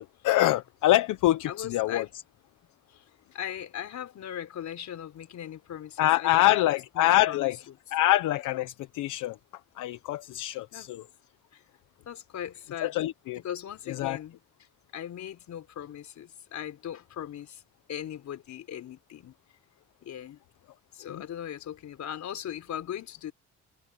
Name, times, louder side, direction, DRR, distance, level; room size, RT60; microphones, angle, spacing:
voice 1, 0.0-2.0 6.0-7.6 7.9-9.4 9.8-11.0 12.8-13.4 13.9-14.2 21.1-21.2, left 15 dB, 90° left, 1.0 m, -25 dB
voice 2, 1.5-2.1 3.3-6.7 7.0-7.5 10.7-10.9 11.5-11.6 12.1-12.9 13.4-14.4 14.9-17.6 17.9-19.3 20.0-20.4 20.9-23.3, left 10 dB, 70° left, 4.2 m, -39 dB
cardioid pair, 90°, 30 cm